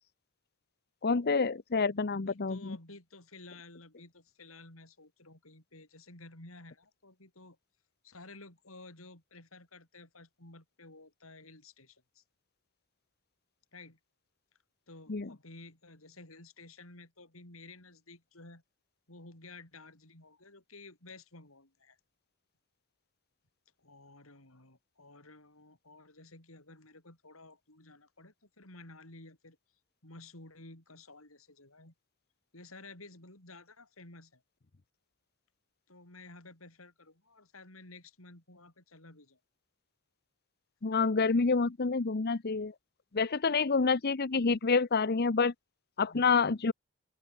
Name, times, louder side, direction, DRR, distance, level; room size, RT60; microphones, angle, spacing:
voice 1, 1.0-2.8 15.1-15.3 40.8-42.7 43.1-45.5 46.0-46.7, left 4 dB, 50° left, 0.8 m, -28 dB
voice 2, 2.1-7.6 8.0-12.2 13.7-14.0 14.9-18.6 19.1-22.0 23.8-29.6 30.0-31.9 32.5-34.4 35.9-39.4 46.0-46.3, left 2 dB, 80° left, 6.9 m, -53 dB
open air
head